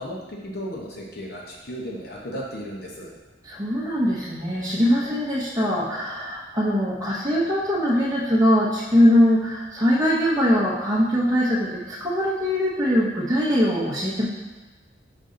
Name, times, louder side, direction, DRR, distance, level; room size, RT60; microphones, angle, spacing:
voice 1, 0.0-3.1, equal, 55° left, -2 dB, 0.9 m, -35 dB
voice 2, 3.4-14.3, equal, 20° right, -9 dB, 0.9 m, -21 dB
5.6 x 5.1 x 3.8 m, 1.3 s
head